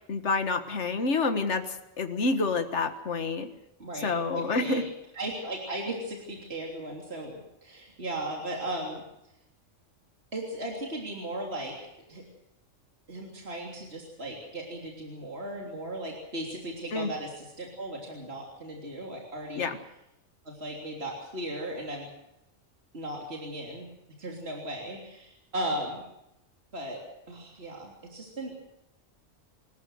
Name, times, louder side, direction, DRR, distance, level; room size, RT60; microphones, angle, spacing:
voice 1, 0.1-3.5 4.0-4.8 16.9-17.1 19.6-19.8, left 3 dB, 65° left, 7 dB, 1.9 m, -28 dB
voice 2, 3.8-4.8 5.1-9.0 10.3-11.7 12.1-12.2 13.1-19.7 20.4-22.1 22.9-23.9 24.2-26.0 26.7-28.5, right 1 dB, 55° right, -1 dB, 3.6 m, -36 dB
26.0 x 14.5 x 8.0 m, 0.86 s
omnidirectional pair, 1.3 m